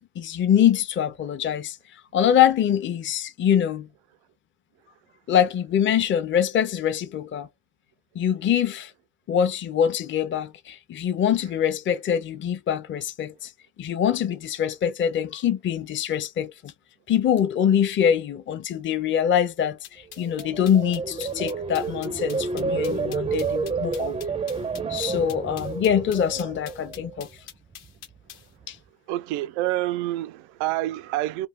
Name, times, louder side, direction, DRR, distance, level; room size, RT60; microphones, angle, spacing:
voice 1, 0.0-1.8 2.1-3.9 5.3-7.5 8.1-8.9 9.3-13.5 13.8-16.7 17.1-24.2 24.9-27.3 28.7-28.8, left 9 dB, 30° left, 0.6 m, -24 dB
sound 1, 19.8-28.5, left 10 dB, 65° left, 0.9 m, -44 dB
sound 2, 20.2-27.3 27.7-28.1, right 4 dB, 15° right, 0.5 m, -30 dB
voice 2, 29.1-31.5, right 15 dB, 85° right, 0.5 m, -27 dB
2.3 x 2.2 x 3.6 m
cardioid pair, 110°, 40 cm